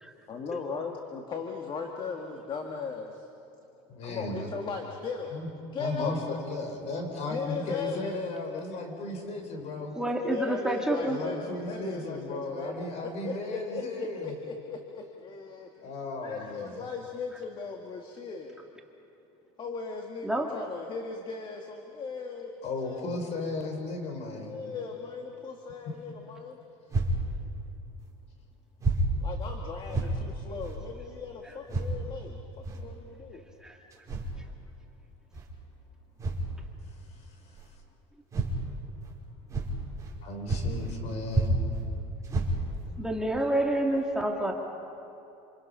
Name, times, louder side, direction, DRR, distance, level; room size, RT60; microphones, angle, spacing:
voice 1, 0.3-3.2 4.0-5.3 5.7-6.2 7.3-8.2 8.7-8.9 9.9-15.7 16.2-18.6 19.6-22.5 22.8-23.3 24.4-26.6 29.2-32.4 32.7-33.4, left 5 dB, 35° left, 3 dB, 1.9 m, -38 dB
voice 2, 3.9-4.5 5.3-5.5 5.8-9.9 11.1-14.3 15.8-16.8 22.6-24.6 40.2-41.5, left 2 dB, 55° left, 4 dB, 5.0 m, -35 dB
voice 3, 10.0-11.2 20.2-20.5 31.4-31.5 33.6-33.8 43.0-44.5, right 1 dB, 5° right, 1 dB, 2.0 m, -28 dB
sound 1, 26.9-27.2 28.0-28.1 28.8-29.0 29.4-29.5 29.9-30.1 30.6-30.8 31.7-31.9 32.6-32.8 33.9-34.3 35.3-35.5 36.2-36.5 37.6-37.7 38.3-38.5 39.0-39.1 39.5-40.2 40.5-41.0 41.3-41.8 42.2-42.9 43.4-43.5 44.0-44.1, right 2 dB, 25° right, 5.0 m, -30 dB
27.5 x 27.5 x 5.7 m, 2.8 s
cardioid pair, 125°, 14 cm